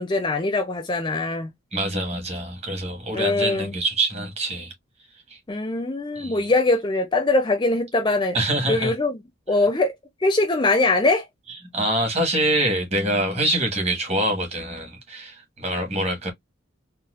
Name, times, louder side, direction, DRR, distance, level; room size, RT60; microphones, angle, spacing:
voice 1, 0.0-1.5 3.1-3.7 5.5-8.3 8.7-9.2 9.5-9.9 10.2-11.3, left 2 dB, 20° left, 0.5 m, -22 dB
voice 2, 1.7-4.7 5.3-5.4 6.2-6.4 8.3-8.9 11.5-16.3, right 1 dB, 30° right, 1.2 m, -25 dB
4.1 x 2.2 x 2.3 m
head